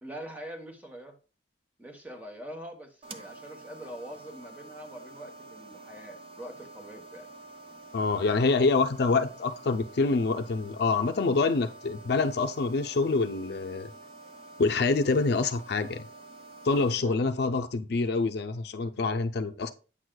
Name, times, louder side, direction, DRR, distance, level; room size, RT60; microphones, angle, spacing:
voice 1, 0.0-1.2 1.8-7.3 16.8-17.2, right 1 dB, 10° right, 4 dB, 1.0 m, -44 dB
sound 1, 3.0-16.9, right 2 dB, 30° right, 0.6 m, -48 dB
voice 2, 7.9-13.9 14.6-16.1 16.6-19.7, left 3 dB, 65° left, 7 dB, 0.5 m, -26 dB
8.7 x 6.2 x 2.2 m, 0.35 s
head